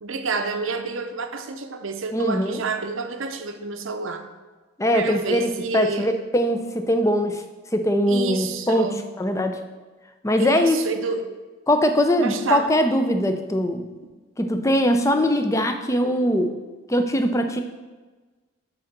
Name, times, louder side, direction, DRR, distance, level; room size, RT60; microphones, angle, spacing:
voice 1, 0.0-4.2 4.9-6.1 8.1-9.0 10.4-11.4 12.2-12.7, right 4 dB, 65° right, 8 dB, 0.7 m, -28 dB
voice 2, 2.1-2.6 4.8-7.4 7.7-8.9 9.2-9.6 10.2-10.8 11.7-13.9 14.4-16.5 16.9-17.6, equal, 15° left, 7 dB, 0.5 m, -21 dB
8.7 x 3.8 x 6.6 m, 1.3 s
head